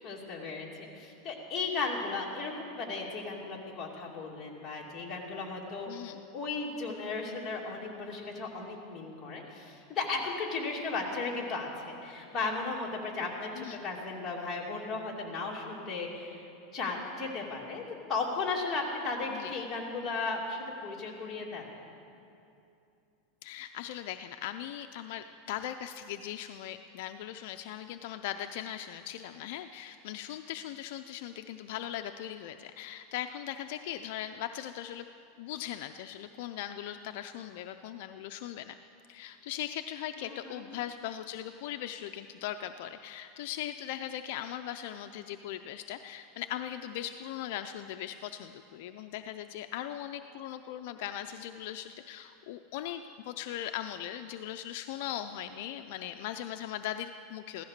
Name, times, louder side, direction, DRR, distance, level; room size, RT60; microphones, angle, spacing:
voice 1, 0.0-5.9 6.3-17.8 18.1-21.6 40.2-40.7, left 3 dB, 15° left, -4 dB, 2.6 m, -35 dB
voice 2, 5.9-6.2 13.6-13.8 19.3-19.5 23.4-35.1 35.4-38.8 39.1-57.6, left 11 dB, 60° left, 8 dB, 0.5 m, -39 dB
16.0 x 13.5 x 6.6 m, 2.7 s
supercardioid pair, 155°, 0 cm